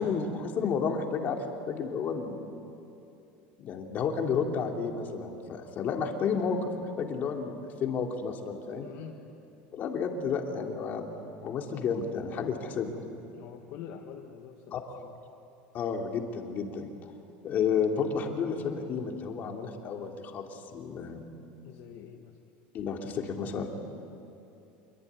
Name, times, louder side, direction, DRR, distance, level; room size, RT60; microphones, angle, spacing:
voice 1, 0.0-2.4 3.6-8.9 9.7-11.1 11.4-13.0 14.7-14.9 15.7-17.1 17.4-21.2 22.7-23.7, left 6 dB, 35° left, 2 dB, 2.9 m, -31 dB
voice 2, 8.8-9.2 12.4-12.5 13.3-15.1 21.6-22.4, left 8 dB, 55° left, 2 dB, 1.7 m, -46 dB
26.0 x 23.0 x 9.7 m, 2.7 s
cardioid pair, 145°, 5 cm